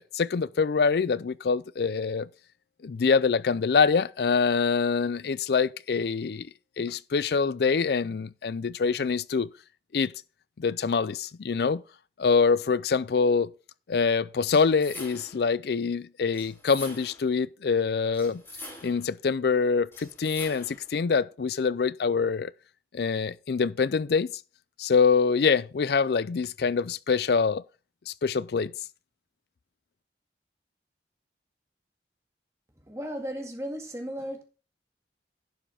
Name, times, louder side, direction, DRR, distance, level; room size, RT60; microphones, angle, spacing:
voice 1, 0.0-2.3 2.8-6.5 6.8-9.5 9.9-10.1 10.6-11.8 12.2-13.5 13.9-18.4 18.8-22.5 22.9-24.3 24.8-27.6 28.1-28.7, left 5 dB, 60° left, 0.4 m, -25 dB
sound 1, 14.5-15.5 16.3-17.3 18.1-19.1 19.9-20.9, left 1 dB, 15° left, 4.9 m, -44 dB
voice 2, 32.9-34.4, equal, 15° right, 2.0 m, -35 dB
11.5 x 7.6 x 3.5 m
head